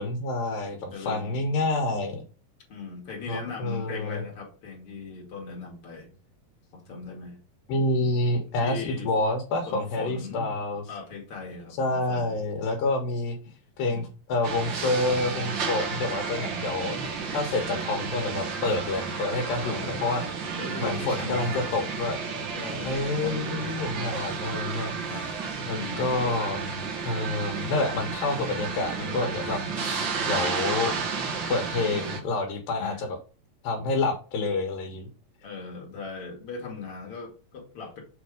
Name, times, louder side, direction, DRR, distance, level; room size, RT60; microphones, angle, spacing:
voice 1, 0.0-2.2 3.2-4.2 7.7-10.8 11.8-13.4 13.8-17.0 17.3-20.2 20.8-22.2 22.8-24.9 25.7-26.6 27.0-29.9 30.3-30.9 31.5-33.2 33.6-35.1, left 2 dB, 80° left, 3 dB, 2.8 m, -28 dB
voice 2, 0.9-1.4 2.7-6.1 6.7-7.4 8.6-9.1 9.7-10.5 10.9-12.4 13.8-14.1 19.5-20.0 20.5-21.9 22.5-23.7 25.1-25.3 25.7-26.1 32.8-33.0 35.4-38.0, left 4 dB, 45° left, -1 dB, 2.7 m, -39 dB
sound 1, 14.4-32.2, right 5 dB, 65° right, 1.1 m, -32 dB
7.0 x 3.5 x 4.9 m, 0.35 s
omnidirectional pair, 4.0 m